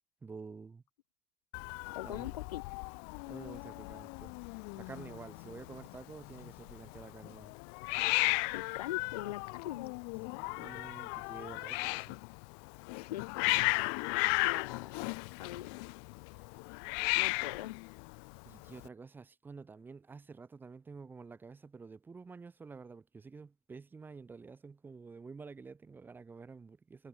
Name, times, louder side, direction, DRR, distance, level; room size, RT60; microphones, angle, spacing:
voice 1, 0.2-0.8 2.0-2.3 3.3-4.3 4.7-7.5 10.3-12.2 18.4-27.1, right 4 dB, 10° right, 4.0 m, -49 dB
Hiss, 1.5-18.9, left 40 dB or more, 35° left, 0.5 m, -36 dB
voice 2, 1.9-2.6 8.5-9.9 10.6-10.7 12.9-13.3 14.4-15.1 15.4-15.9 17.1-17.8, left 13 dB, 80° left, 5.3 m, -42 dB
supercardioid pair, 170°, 20 cm